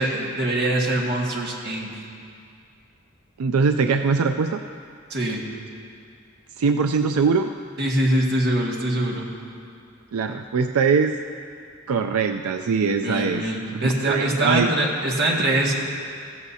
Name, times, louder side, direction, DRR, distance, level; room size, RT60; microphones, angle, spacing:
voice 1, 0.0-1.9 5.1-5.4 7.8-9.3 13.0-15.7, right 1 dB, 50° right, -2 dB, 1.8 m, -23 dB
voice 2, 3.4-4.6 6.6-7.5 10.1-11.2 11.9-14.7, right 5 dB, 90° right, 6 dB, 0.4 m, -22 dB
15.5 x 14.0 x 2.8 m, 2.3 s
head